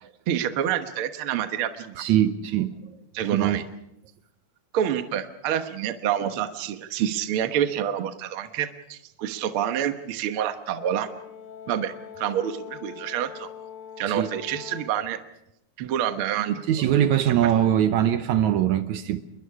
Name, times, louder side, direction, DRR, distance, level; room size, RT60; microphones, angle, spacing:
voice 1, 0.3-2.0 3.1-3.6 4.7-11.1 11.7-13.5 14.0-15.2 15.8-16.6, right 10 dB, 55° right, 1.7 m, -27 dB
voice 2, 2.0-2.7 3.3-3.6 14.2-14.3 16.7-19.2, right 10 dB, 70° right, 2.2 m, -22 dB
Brass instrument, 10.8-15.0, left 8 dB, 50° left, 2.4 m, -42 dB
28.0 x 23.0 x 4.8 m
omnidirectional pair, 3.6 m